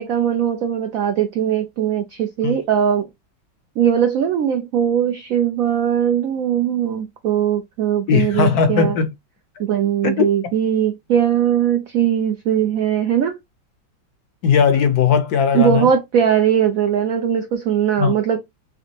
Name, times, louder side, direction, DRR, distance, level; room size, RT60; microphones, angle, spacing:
voice 1, 0.0-3.1 3.8-9.0 9.6-13.4 15.5-18.4, right 9 dB, 75° right, 0.7 m, -20 dB
voice 2, 8.1-9.1 10.0-10.2 14.4-15.9 18.0-18.1, left 6 dB, 65° left, 1.0 m, -17 dB
3.9 x 3.3 x 2.7 m
omnidirectional pair, 2.0 m